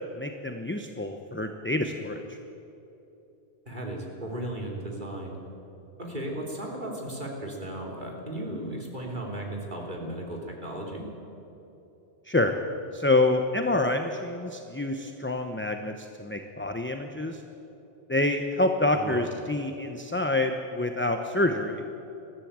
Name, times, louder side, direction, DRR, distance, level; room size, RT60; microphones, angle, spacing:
voice 1, 0.1-2.4 12.2-12.6 12.9-17.4 18.1-21.8, left 2 dB, 10° left, 5 dB, 0.8 m, -27 dB
voice 2, 3.7-5.4 6.0-11.1 18.9-19.2, right 1 dB, 45° right, -1 dB, 3.6 m, -35 dB
21.5 x 14.0 x 8.8 m, 3.0 s
omnidirectional pair, 1.1 m